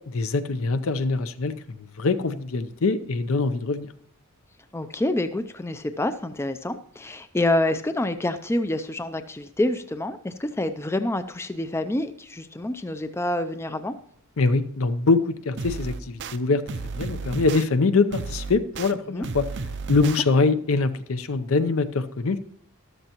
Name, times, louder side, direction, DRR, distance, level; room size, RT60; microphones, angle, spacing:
voice 1, 0.1-3.9 14.4-16.6 16.9-19.5 19.9-22.4, left 3 dB, 70° left, 12 dB, 0.6 m, -23 dB
voice 2, 4.7-13.9 19.1-19.3, left 1 dB, 10° left, 10 dB, 0.4 m, -27 dB
sound 1, 15.6-16.4 16.7-17.6 18.1-18.9 19.2-20.2, right 4 dB, 55° right, 0.6 m, -33 dB
13.5 x 12.0 x 3.0 m, 0.65 s
head